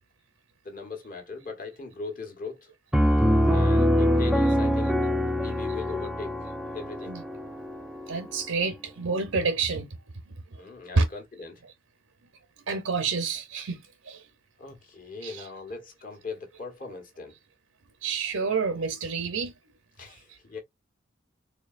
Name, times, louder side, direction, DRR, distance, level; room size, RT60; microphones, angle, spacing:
voice 1, 0.6-2.7 3.5-5.0 5.4-6.3 6.7-7.2 10.6-11.6 14.6-17.4 20.0-20.6, left 4 dB, 40° left, 1.3 m, -40 dB
Piano, 2.9-8.5, equal, 5° right, 0.3 m, -24 dB
voice 2, 8.1-9.9 10.3-10.6 10.9-11.1 12.7-14.3 15.2-15.5 16.9-17.0 18.0-19.5 20.1-20.4, right 4 dB, 85° right, 0.7 m, -29 dB
4.4 x 2.8 x 2.4 m
head